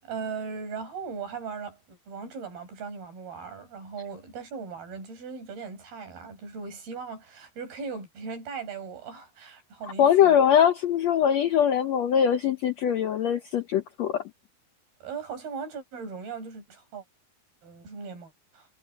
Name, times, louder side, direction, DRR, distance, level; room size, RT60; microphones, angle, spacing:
voice 1, 0.0-10.4 15.0-17.0 17.6-18.7, right 5 dB, 90° right, 8.4 m, -38 dB
voice 2, 10.0-14.2, left 9 dB, 75° left, 1.6 m, -22 dB
omnidirectional pair, 4.3 m